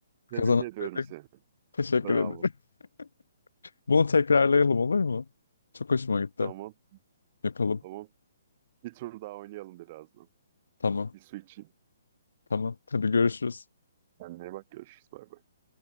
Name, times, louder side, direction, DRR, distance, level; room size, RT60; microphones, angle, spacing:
voice 1, 0.3-1.3 2.0-2.4 6.4-6.7 7.8-8.1 8.8-10.3 11.1-11.7 14.2-15.4, right 17 dB, 35° right, 4.5 m, -41 dB
voice 2, 1.8-2.3 3.9-5.2 5.9-6.5 7.4-7.8 10.8-11.1 12.5-13.6, left 4 dB, 90° left, 0.7 m, -24 dB
hypercardioid pair, 150°, 0 cm